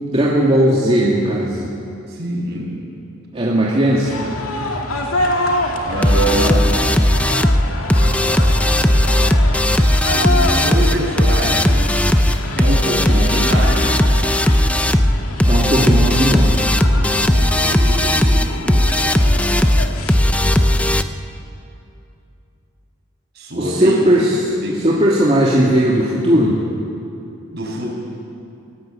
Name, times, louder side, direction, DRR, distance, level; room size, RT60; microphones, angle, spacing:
voice 1, 0.1-1.7 3.3-4.3 8.0-8.3 15.4-16.6 23.6-24.4 24.7-26.6, right 1 dB, 30° right, -5 dB, 2.5 m, -17 dB
voice 2, 2.1-2.7 5.9-6.6 10.1-11.9 12.6-13.9 16.9-18.8 23.4-24.1 24.6-24.9 27.5-28.0, right 1 dB, 50° right, -2 dB, 7.3 m, -24 dB
sound 1, 4.0-20.8, left 1 dB, 90° left, 2.3 m, -26 dB
sound 2, 6.0-21.0, left 1 dB, 5° left, 0.6 m, -16 dB
26.0 x 17.0 x 9.1 m, 2.6 s
head